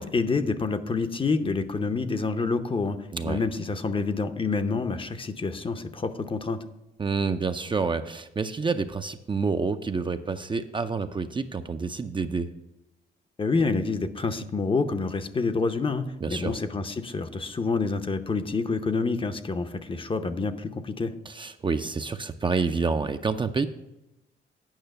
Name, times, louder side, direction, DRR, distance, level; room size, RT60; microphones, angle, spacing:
voice 1, 0.0-3.0 3.2-6.6 13.4-21.1, left 4 dB, 25° left, 9 dB, 0.7 m, -27 dB
voice 2, 7.0-12.5 16.2-16.5 21.3-23.7, right 4 dB, 25° right, 8 dB, 0.5 m, -28 dB
9.0 x 5.5 x 6.6 m, 0.95 s
cardioid pair, 90°, 20 cm